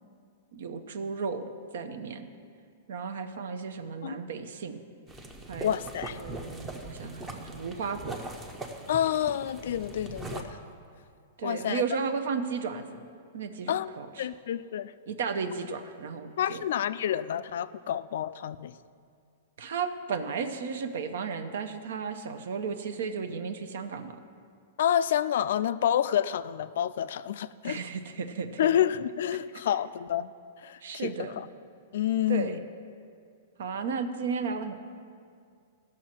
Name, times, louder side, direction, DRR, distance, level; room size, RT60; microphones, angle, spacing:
voice 1, 0.5-2.3 2.9-4.8 5.5-5.7 6.0-8.2 11.4-13.1 13.3-14.3 15.1-16.6 19.6-24.2 27.6-28.5 30.8-31.3 32.3-32.6 33.6-34.7, right 5 dB, 70° right, 9 dB, 0.8 m, -34 dB
sound 1, 5.1-10.4, right 2 dB, 10° right, 0.7 m, -41 dB
voice 2, 5.6-6.2 8.9-10.6 11.4-11.8 13.7-14.9 16.4-18.7 24.8-27.8 28.6-30.3 30.6-31.5 31.9-32.6, left 10 dB, 65° left, 15 dB, 0.3 m, -29 dB
16.0 x 6.3 x 4.4 m, 2.3 s
supercardioid pair, 170°, 0 cm